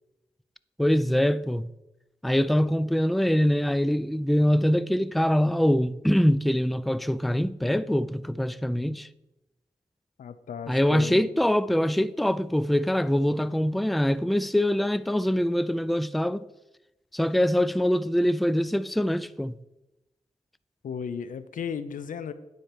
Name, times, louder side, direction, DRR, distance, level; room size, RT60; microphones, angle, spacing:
voice 1, 0.8-1.7 2.2-9.1 10.7-16.5 17.1-19.5, equal, ahead, 0.4 m, -24 dB
voice 2, 10.2-11.3 20.8-22.3, left 7 dB, 90° left, 0.5 m, -35 dB
9.5 x 4.3 x 6.6 m
cardioid pair, 45°, 13 cm